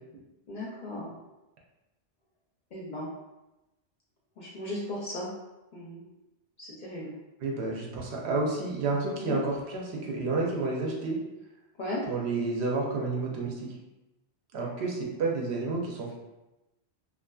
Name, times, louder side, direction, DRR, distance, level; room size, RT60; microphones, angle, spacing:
voice 1, 0.5-1.2 2.7-3.1 4.4-5.3 5.7-6.0 6.6-7.1 9.2-9.4 11.8-12.0, left 1 dB, 55° left, -5 dB, 0.5 m, -36 dB
voice 2, 7.4-11.2 12.1-13.7 14.5-16.1, right 3 dB, 70° right, -1 dB, 0.8 m, -30 dB
2.5 x 2.4 x 2.2 m, 1.0 s
omnidirectional pair, 1.2 m